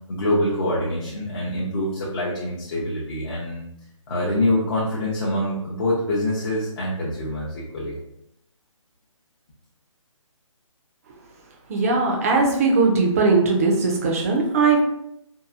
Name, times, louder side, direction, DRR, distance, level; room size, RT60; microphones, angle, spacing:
voice 1, 0.1-3.6 4.1-8.0, left 1 dB, 45° left, -6 dB, 0.6 m, -25 dB
voice 2, 11.7-14.8, right 3 dB, 25° right, 0 dB, 0.4 m, -19 dB
2.8 x 2.4 x 2.4 m, 0.80 s
figure-of-eight pair, 150°, 17 cm